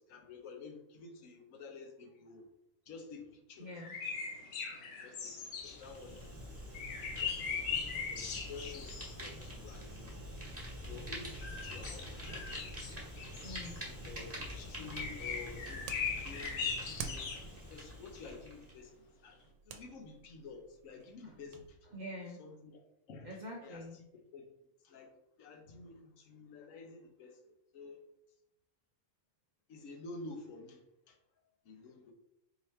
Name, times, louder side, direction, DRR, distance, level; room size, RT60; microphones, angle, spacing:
voice 1, 0.0-2.5 2.9-3.7 5.0-6.2 7.2-10.2 10.9-12.1 13.4-13.7 14.1-15.9 16.2-16.6 17.0-17.3 17.7-19.0 19.2-19.4 19.7-21.8 22.4-22.8 23.1-23.3 23.6-23.8 24.3-24.5 24.8-25.1 25.4-28.0 29.7-30.8 31.1-31.2 31.6-32.1, left 4 dB, 65° left, 4 dB, 1.1 m, -50 dB
voice 2, 3.6-4.0 7.6-7.8 13.4-13.8 21.2-21.4 21.8-22.4 23.2-24.0, left 1 dB, 60° right, -2 dB, 0.4 m, -46 dB
sound 1, 3.8-6.3 6.7-9.7 11.1-13.8 14.9-17.5 17.9-18.0, left 6 dB, 90° left, 1.3 m, -40 dB
Fire, 5.4-18.8, equal, 10° right, 1.2 m, -46 dB
sound 2, 15.0-21.7, right 6 dB, 90° right, 1.1 m, -51 dB
4.6 x 2.9 x 3.2 m, 0.80 s
omnidirectional pair, 1.5 m